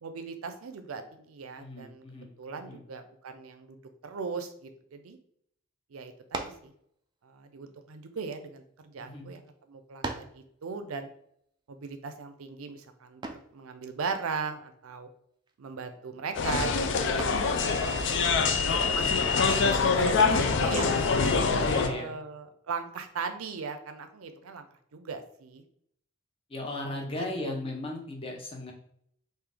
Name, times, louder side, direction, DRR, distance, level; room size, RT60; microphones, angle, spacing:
voice 1, 0.0-2.0 2.4-5.2 5.9-6.7 7.2-11.1 11.7-15.1 15.6-17.3 18.7-21.5 21.8-24.7 24.9-25.6 27.1-27.5, right 5 dB, 85° right, 8 dB, 0.5 m, -38 dB
voice 2, 1.6-2.3 2.7-2.8 9.0-9.3 21.6-22.2 26.5-28.7, left 2 dB, 25° left, 1 dB, 0.7 m, -36 dB
sound 1, 6.3-6.7 7.6-8.8 9.5-9.6 10.0-10.4 13.2-13.6 15.5-15.8 16.2-16.6 17.2-17.5 20.2-20.6, right 3 dB, 20° right, 0.3 m, -38 dB
sound 2, 16.3-21.9, left 5 dB, 60° left, 0.4 m, -25 dB
3.8 x 2.6 x 3.3 m, 0.68 s
head